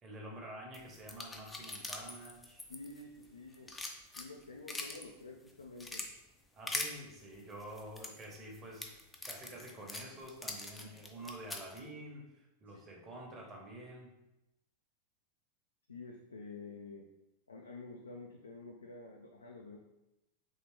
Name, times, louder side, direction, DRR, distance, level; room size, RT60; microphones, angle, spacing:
voice 1, 0.0-2.6 6.5-8.9 9.2-14.1, right 1 dB, 25° right, -2 dB, 0.9 m, -48 dB
sound 1, 0.7-3.2 3.5-5.1 5.5-6.1 6.7-6.9 7.6-11.8, left 2 dB, 10° left, 0.4 m, -42 dB
voice 2, 2.7-3.8 4.1-6.1 12.7-12.8 15.9-17.1 17.5-19.8, left 3 dB, 75° left, 1 dB, 0.3 m, -49 dB
3.6 x 3.2 x 3.0 m, 0.93 s
figure-of-eight pair, 90°, 0 cm